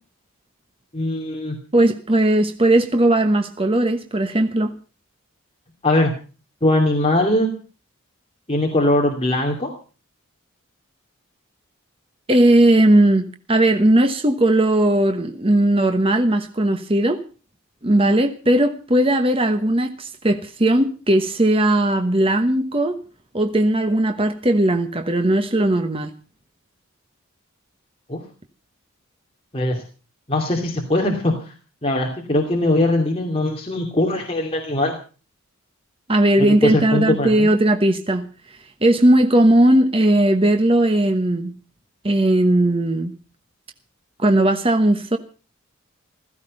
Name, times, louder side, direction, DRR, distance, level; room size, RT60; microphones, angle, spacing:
voice 1, 0.9-1.6 5.8-6.1 6.6-7.5 8.5-9.7 28.1-28.2 29.5-29.8 30.3-31.5 31.8-35.0 36.4-37.5, left 1 dB, 25° left, 2.7 m, -21 dB
voice 2, 1.7-4.7 12.3-17.2 17.8-23.0 23.3-26.1 36.1-38.3 38.8-41.6 42.0-43.1 44.2-45.2, right 1 dB, 25° right, 1.1 m, -17 dB
16.0 x 15.0 x 5.4 m
head